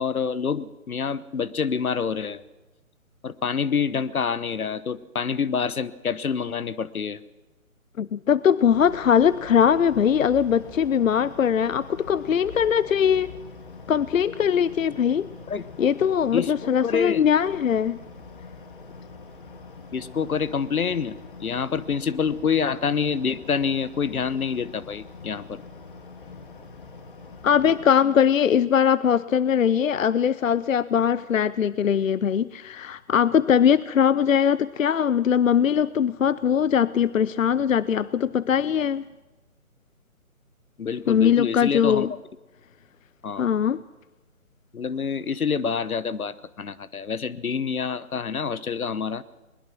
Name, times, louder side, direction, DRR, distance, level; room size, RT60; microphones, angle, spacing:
voice 1, 0.0-2.4 3.2-7.2 15.5-15.6 16.3-17.2 19.9-25.6 40.8-42.1 43.2-43.5 44.7-49.2, left 6 dB, 85° left, 18 dB, 1.1 m, -27 dB
voice 2, 8.0-13.3 13.9-15.3 15.8-18.0 27.4-39.0 41.1-42.1 43.4-43.8, left 8 dB, 65° left, 18 dB, 0.6 m, -21 dB
sound 1, 8.7-27.9, left 4 dB, 35° left, 2.2 m, -44 dB
21.5 x 20.5 x 6.1 m, 1.1 s
hypercardioid pair, 165°, 42 cm